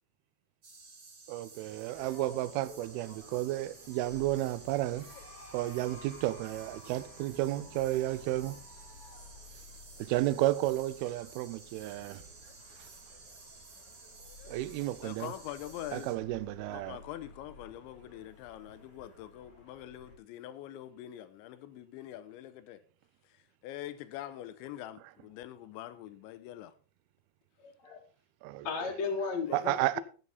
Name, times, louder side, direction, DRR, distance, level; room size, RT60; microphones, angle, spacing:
sound 1, 0.6-16.2, right 3 dB, 35° right, 2.0 m, -54 dB
voice 1, 1.3-5.1 5.5-8.6 10.0-12.2 14.5-15.3 15.9-17.0 28.4-28.7 29.5-30.0, right 16 dB, 90° right, 2.2 m, -32 dB
sound 2, 1.9-20.2, left 3 dB, 25° left, 2.2 m, -54 dB
voice 2, 15.0-16.2 16.7-22.8 23.6-26.7 29.5-29.7, left 12 dB, 90° left, 3.2 m, -44 dB
voice 3, 27.6-28.0 28.6-30.0, left 4 dB, 50° left, 2.3 m, -35 dB
12.0 x 9.8 x 4.0 m
omnidirectional pair, 5.3 m